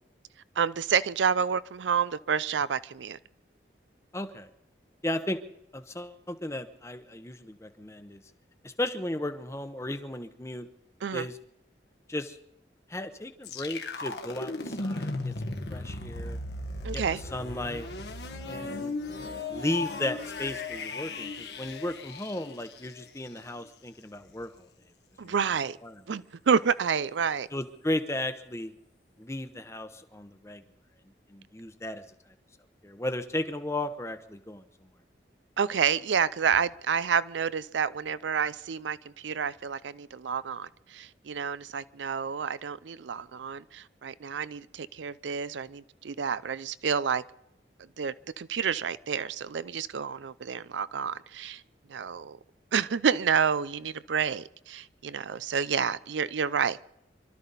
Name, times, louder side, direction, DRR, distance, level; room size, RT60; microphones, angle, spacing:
voice 1, 0.6-3.2 11.0-11.3 16.8-17.2 25.2-25.8 26.1-27.5 35.6-47.2 48.0-51.6 51.9-52.4 52.7-56.9, right 6 dB, 90° right, 0.5 m, -29 dB
voice 2, 4.1-4.5 5.0-5.4 5.7-8.2 8.6-10.7 11.1-11.3 12.1-12.4 12.9-16.4 16.9-17.0 17.3-17.9 18.5-19.0 19.5-24.7 25.2-25.3 25.8-25.9 27.5-28.7 29.2-30.6 31.3-32.0 32.8-34.6, left 1 dB, 15° left, 0.8 m, -35 dB
sound 1, 13.4-23.3, left 2 dB, 70° left, 1.5 m, -36 dB
26.0 x 12.5 x 4.1 m
head